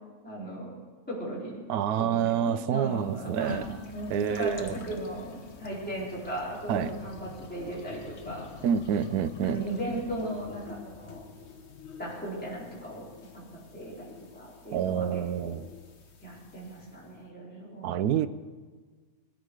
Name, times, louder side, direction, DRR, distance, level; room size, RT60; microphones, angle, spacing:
voice 1, 0.2-0.7 1.1-1.6 2.0-8.5 9.4-11.2 12.0-13.1 13.3-13.4 13.7-15.5 16.2-18.0, right 1 dB, 5° left, 4.5 m, -37 dB
voice 2, 1.7-3.6 4.1-4.8 6.7-6.9 8.6-9.6 14.7-15.6 17.8-18.3, right 9 dB, 90° right, 1.2 m, -27 dB
sound 1, 2.8-17.1, left 4 dB, 50° left, 1.4 m, -47 dB
19.5 x 14.0 x 4.9 m
omnidirectional pair, 1.6 m